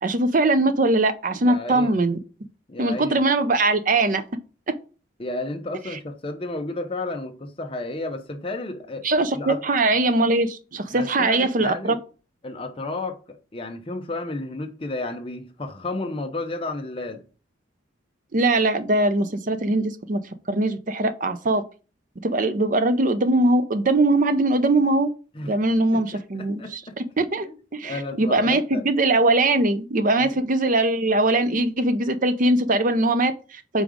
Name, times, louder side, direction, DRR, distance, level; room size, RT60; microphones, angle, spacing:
voice 1, 0.0-2.2 2.8-4.2 5.9-6.0 9.0-12.0 18.3-20.2 20.5-21.6 22.2-25.1 25.5-33.8, right 2 dB, 40° right, 0.6 m, -21 dB
voice 2, 1.4-2.1 2.7-3.3 5.2-9.1 9.3-9.6 10.9-12.0 12.4-17.2 25.3-25.6 25.9-26.9 27.5-27.6 27.8-28.9 30.2-30.4, left 2 dB, 30° left, 0.8 m, -32 dB
5.2 x 3.7 x 5.0 m
head